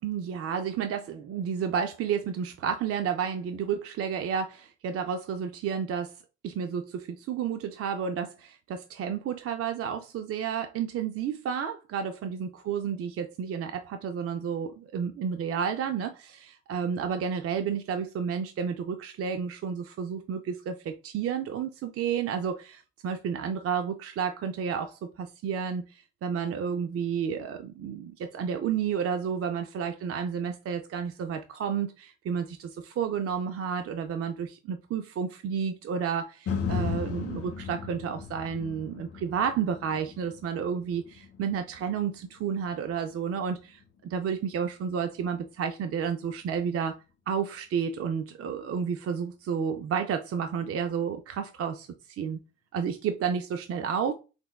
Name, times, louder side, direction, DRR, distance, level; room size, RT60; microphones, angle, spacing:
voice 1, 0.0-6.2 6.4-47.0 47.3-52.4 52.7-54.1, right 7 dB, 50° right, 0.4 m, -31 dB
sound 1, 36.5-44.6 45.1-45.2, left 6 dB, 50° left, 0.7 m, -37 dB
5.9 x 2.2 x 2.2 m
cardioid pair, 90°, 30 cm